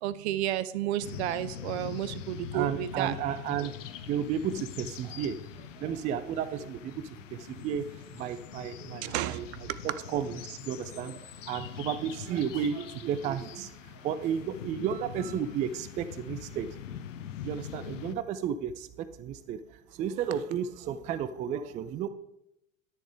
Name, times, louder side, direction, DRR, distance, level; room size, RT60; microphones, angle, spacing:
voice 1, 0.0-3.1 9.0-9.4 9.7-9.8, right 12 dB, 55° right, 16 dB, 0.7 m, -31 dB
sound 1, 1.0-18.1, left 10 dB, 65° left, 0.9 m, -43 dB
voice 2, 2.5-3.7 4.1-7.9 8.1-16.8 17.4-19.6 19.9-22.1, right 8 dB, 20° right, 13 dB, 0.4 m, -33 dB
10.5 x 10.0 x 3.6 m, 0.85 s
figure-of-eight pair, 80°, 40 cm